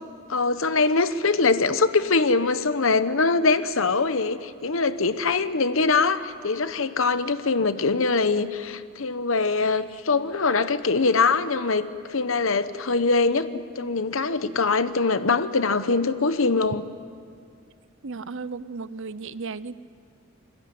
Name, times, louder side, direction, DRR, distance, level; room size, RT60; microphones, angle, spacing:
voice 1, 0.3-16.8, left 4 dB, 65° left, 12 dB, 1.0 m, -23 dB
voice 2, 18.0-19.8, right 4 dB, 65° right, 16 dB, 0.8 m, -35 dB
28.0 x 21.0 x 9.4 m, 2.3 s
head